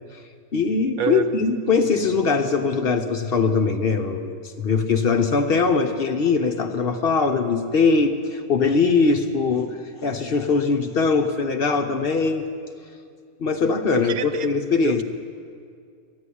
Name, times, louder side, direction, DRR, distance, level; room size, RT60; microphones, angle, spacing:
voice 1, 0.5-12.5 13.4-15.0, left 4 dB, 50° left, 5 dB, 0.9 m, -21 dB
voice 2, 13.9-14.5 14.8-15.0, right 8 dB, 85° right, 10 dB, 1.2 m, -26 dB
12.5 x 9.7 x 9.9 m, 2.2 s
omnidirectional pair, 1.5 m